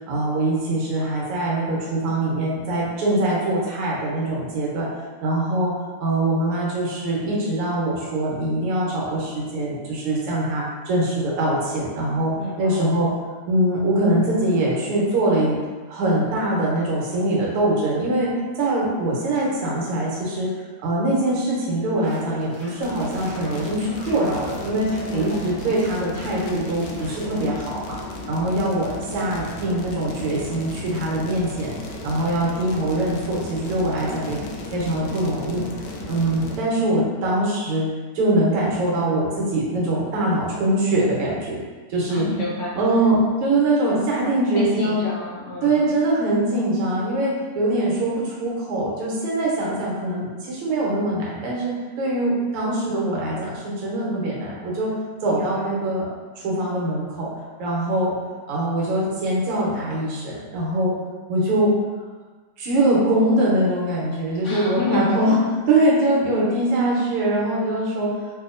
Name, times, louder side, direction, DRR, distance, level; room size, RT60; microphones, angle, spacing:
voice 1, 0.1-4.9 5.2-5.7 6.0-13.1 13.5-15.6 15.9-28.0 28.3-31.7 32.0-34.4 34.7-35.7 36.1-37.9 38.1-41.6 41.9-42.3 42.8-45.0 45.6-54.9 55.2-56.1 56.4-57.3 57.6-58.2 58.5-61.0 61.3-61.7 62.6-65.4 65.7-68.1, right 1 dB, 85° right, -5 dB, 1.8 m, -23 dB
voice 2, 12.3-12.9 25.1-25.8 42.1-42.8 44.5-45.9 55.3-55.9 64.4-65.3, left 2 dB, 70° left, -5 dB, 1.2 m, -30 dB
sound 1, 21.8-24.6 24.9-25.8 26.1-27.5, right 1 dB, 55° right, 1.2 m, -42 dB
sound 2, 22.8-36.6, left 2 dB, 90° left, 0.9 m, -35 dB
3.8 x 2.7 x 2.5 m, 1.4 s
omnidirectional pair, 2.4 m